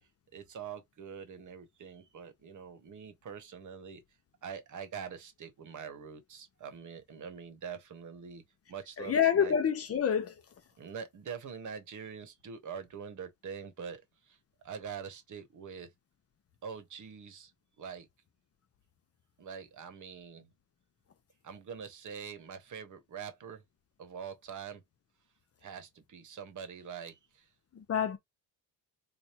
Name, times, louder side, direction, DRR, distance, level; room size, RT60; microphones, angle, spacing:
voice 1, 0.3-4.0 4.4-8.4 8.7-9.6 10.8-14.4 14.6-15.9 16.6-17.5 17.8-18.1 19.4-20.5 21.4-23.6 24.0-24.8 25.6-27.5, right 7 dB, 50° right, 1.0 m, -44 dB
voice 2, 9.0-10.4 27.7-28.2, left 8 dB, 40° left, 0.8 m, -27 dB
3.4 x 2.2 x 4.3 m
cardioid pair, 125°, 38 cm